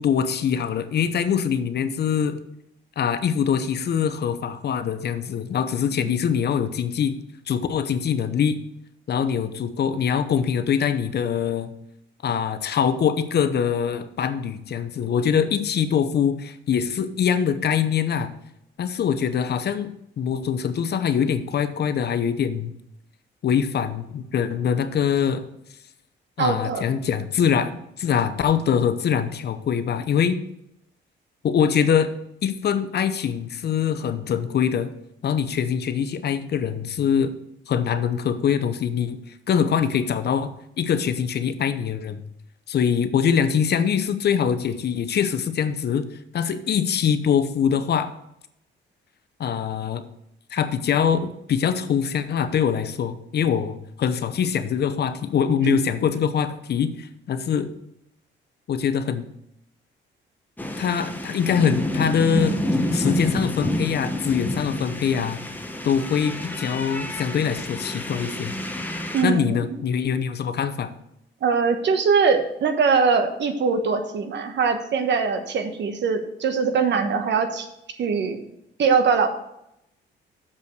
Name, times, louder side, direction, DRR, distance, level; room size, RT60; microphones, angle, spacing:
voice 1, 0.0-2.4 3.0-7.2 7.5-8.6 9.1-11.7 12.2-18.3 18.8-19.9 20.2-22.7 23.4-25.5 26.4-30.4 31.4-32.1 32.4-34.9 35.2-37.3 37.7-39.2 39.5-42.2 42.7-46.1 46.3-48.1 49.4-50.0 50.5-57.7 58.7-59.3 60.8-65.4 65.8-68.5 69.2-70.9, left 7 dB, 55° left, 11 dB, 0.8 m, -23 dB
voice 2, 26.4-26.8 55.6-55.8 69.1-69.8 71.4-77.7 78.0-78.4 78.8-79.3, right 5 dB, 65° right, 7 dB, 1.2 m, -22 dB
sound 1, 60.6-69.2, left 1 dB, 10° left, 1.2 m, -28 dB
7.0 x 5.3 x 6.5 m, 0.80 s
cardioid pair, 90°, 20 cm